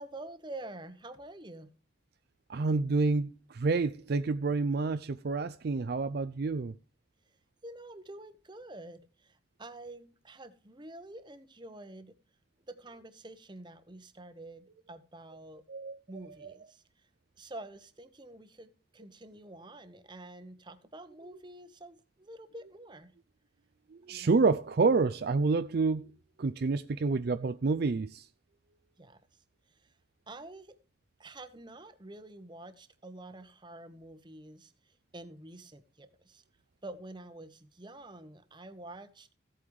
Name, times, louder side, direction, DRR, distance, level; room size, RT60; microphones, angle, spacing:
voice 1, 0.0-1.7 7.6-12.2 12.7-15.6 16.1-16.8 17.4-23.1 24.1-24.4 29.0-29.2 29.8-29.9 30.3-30.8 31.2-34.7 35.1-36.4 36.8-39.3, right 2 dB, 25° right, 1.0 m, -48 dB
voice 2, 2.5-6.7 15.7-16.0 16.4-16.5 24.1-26.1 26.4-28.3, right 4 dB, 50° right, 0.4 m, -28 dB
15.5 x 8.6 x 3.2 m
head